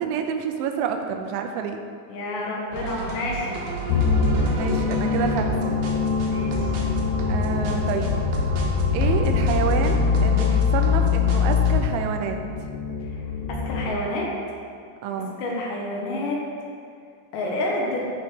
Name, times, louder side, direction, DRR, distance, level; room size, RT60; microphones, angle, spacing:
voice 1, 0.0-1.8 4.5-5.8 7.3-8.2 8.9-12.4 15.0-15.3, right 7 dB, 85° right, 5 dB, 3.1 m, -28 dB
voice 2, 2.1-3.6 6.3-6.7 13.0-13.1 13.5-14.3 15.4-16.4 17.3-18.1, left 1 dB, 75° left, -2 dB, 3.1 m, -29 dB
sound 1, 2.7-11.7, right 2 dB, 70° right, 2.6 m, -33 dB
sound 2, 3.9-13.9, left 5 dB, 90° left, 2.2 m, -23 dB
14.5 x 5.0 x 3.7 m, 2.3 s
omnidirectional pair, 5.4 m